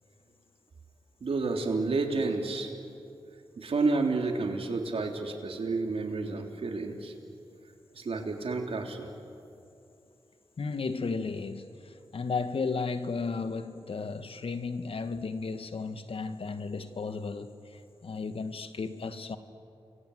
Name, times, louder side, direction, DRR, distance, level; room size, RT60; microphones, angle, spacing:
voice 1, 1.2-2.7 3.6-7.1 7.9-9.1, right 3 dB, 70° right, 3 dB, 3.3 m, -30 dB
voice 2, 10.6-19.4, left 4 dB, 65° left, 9 dB, 1.6 m, -34 dB
29.5 x 23.0 x 8.0 m, 2.6 s
cardioid pair, 45°, 10 cm